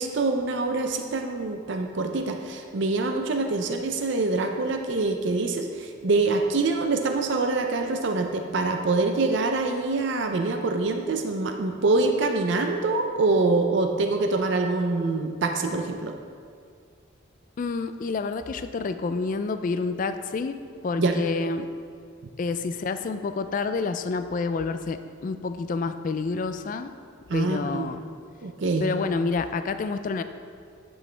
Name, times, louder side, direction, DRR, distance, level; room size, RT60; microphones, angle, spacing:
voice 1, 0.0-16.1 21.0-21.1 27.3-27.9 28.4-28.9, right 3 dB, 60° right, 4 dB, 0.5 m, -25 dB
voice 2, 17.6-20.6 20.8-21.7 22.4-26.9 27.3-28.0 28.8-30.2, left 4 dB, 40° left, 10 dB, 0.3 m, -28 dB
10.0 x 6.3 x 3.3 m, 2.2 s
head